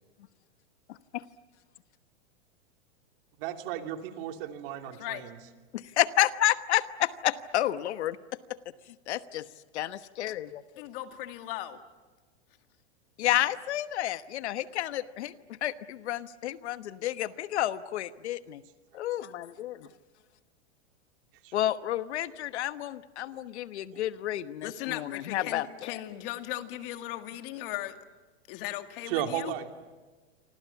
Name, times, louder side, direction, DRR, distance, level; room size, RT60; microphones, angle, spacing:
voice 1, 0.9-1.2 5.7-8.2 9.1-9.5 9.7-10.6 13.2-18.6 18.9-19.9 21.5-26.0, left 13 dB, 75° left, 12 dB, 1.2 m, -30 dB
voice 2, 3.4-5.4 21.4-21.5 23.9-24.0 29.0-29.7, right 11 dB, 55° right, 5 dB, 2.9 m, -35 dB
voice 3, 10.8-11.8 24.6-28.0 28.5-29.5, left 14 dB, 50° left, 7 dB, 2.1 m, -37 dB
28.5 x 25.5 x 7.1 m, 1.3 s
supercardioid pair, 140°, 34 cm